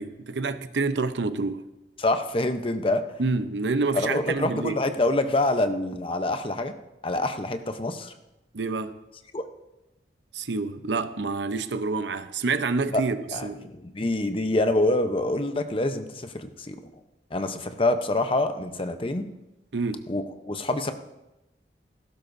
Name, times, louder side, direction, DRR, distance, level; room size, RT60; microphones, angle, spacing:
voice 1, 0.0-1.6 3.2-4.8 8.5-9.0 10.3-13.7 19.7-20.0, right 3 dB, 80° right, 0.7 m, -28 dB
voice 2, 2.0-3.0 3.9-6.7 7.0-8.1 9.3-9.4 12.9-13.0 13.3-16.8 17.3-19.3 20.1-20.9, left 2 dB, 30° left, 0.8 m, -26 dB
17.5 x 15.5 x 2.7 m
head